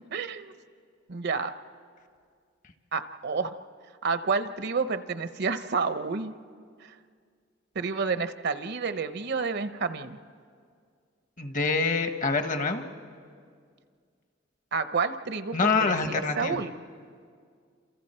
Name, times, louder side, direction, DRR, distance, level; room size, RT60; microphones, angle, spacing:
voice 1, 0.1-0.5 1.1-1.5 2.9-3.5 4.0-6.3 7.7-10.2 14.7-16.7, right 4 dB, 60° right, 11 dB, 0.8 m, -29 dB
voice 2, 11.4-12.8 15.5-16.6, left 4 dB, 45° left, 7 dB, 1.3 m, -26 dB
29.5 x 27.5 x 4.4 m, 2.1 s
head